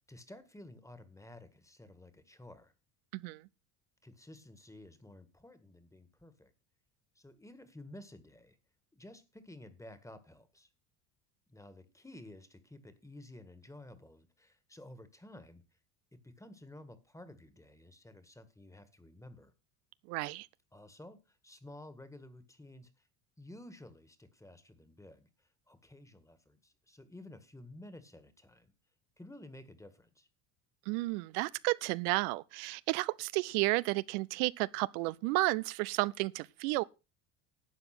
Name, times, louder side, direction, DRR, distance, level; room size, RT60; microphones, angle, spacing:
voice 1, 0.1-2.7 4.0-6.5 7.2-8.6 8.9-10.7 11.5-15.6 16.1-19.5 20.7-23.1 23.4-28.7 29.2-30.3, left 1 dB, 5° left, 1.8 m, -53 dB
voice 2, 20.1-20.5 30.9-36.8, right 22 dB, 75° right, 0.6 m, -32 dB
12.0 x 7.8 x 6.0 m
supercardioid pair, 95°, 45 cm